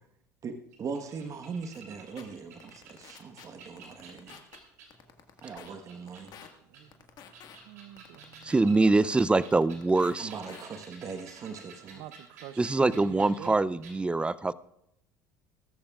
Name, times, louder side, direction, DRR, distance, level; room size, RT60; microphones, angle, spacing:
voice 1, 0.4-4.4 5.4-6.4 10.2-12.0, right 5 dB, 40° right, 5 dB, 1.3 m, -40 dB
sound 1, 0.7-5.0 5.4-6.8 7.2-13.5 13.8-14.0, right 5 dB, 85° right, 3.2 m, -51 dB
sound 2, 1.7-1.8 2.2-2.3 2.6-3.4 3.8-4.6 4.9-5.7 6.1-6.5 6.9-7.6 8.0-9.2 9.5-10.2 10.5-10.6, left 9 dB, 50° left, 1.8 m, -49 dB
voice 2, 7.7-8.5 11.8-12.6 12.9-13.6, right 12 dB, 65° right, 14 dB, 0.8 m, -46 dB
voice 3, 8.4-10.3 12.6-14.5, right 3 dB, 10° right, 19 dB, 0.5 m, -24 dB
20.0 x 13.5 x 2.4 m, 0.78 s
hypercardioid pair, 75°, 9 cm